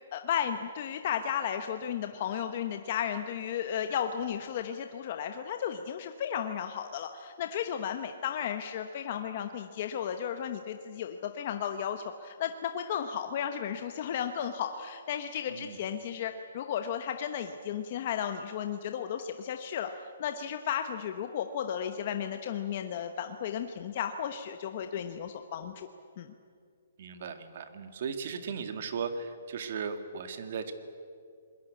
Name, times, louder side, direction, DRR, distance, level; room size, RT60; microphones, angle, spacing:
voice 1, 0.1-19.9 20.2-25.9 26.2-26.3, left 9 dB, 35° left, 7 dB, 1.0 m, -34 dB
voice 2, 27.0-30.7, right 6 dB, 45° right, 8 dB, 2.1 m, -37 dB
26.0 x 21.0 x 8.4 m, 2.3 s
hypercardioid pair, 170°, 0 cm